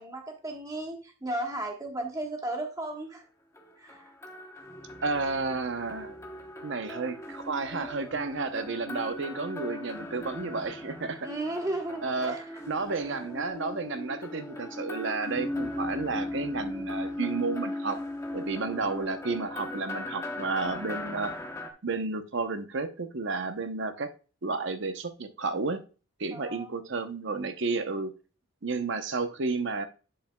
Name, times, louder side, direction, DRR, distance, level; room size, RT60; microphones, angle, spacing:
voice 1, 0.0-3.2 3.8-4.1 11.2-12.6 26.3-26.7, right 1 dB, 15° right, 3 dB, 1.2 m, -35 dB
sound 1, 3.5-21.7, left 1 dB, 15° left, 0.8 m, -38 dB
voice 2, 5.0-6.1 6.6-11.3 12.0-12.4 12.7-18.0 18.3-21.3 21.8-24.1 24.4-25.8 26.2-28.1 28.6-29.9, right 4 dB, 55° right, 9 dB, 0.7 m, -32 dB
10.5 x 5.5 x 2.2 m, 0.35 s
head